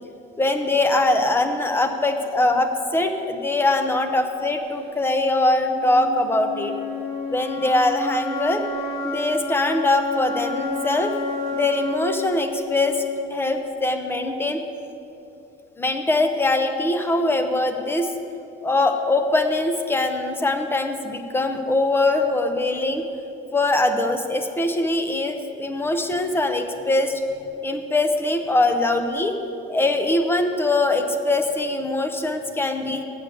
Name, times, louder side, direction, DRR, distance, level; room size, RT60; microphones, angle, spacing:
voice 1, 0.4-6.7 7.3-8.6 9.0-11.1 11.5-13.0 13.3-14.6 15.8-18.1 18.6-23.0 23.5-27.2 27.6-29.4 29.7-33.0, left 2 dB, 10° left, 6 dB, 0.6 m, -22 dB
sound 1, 5.6-13.6, left 2 dB, 80° left, 1.7 m, -30 dB
8.0 x 7.6 x 7.8 m, 2.8 s
cardioid pair, 165°, 21 cm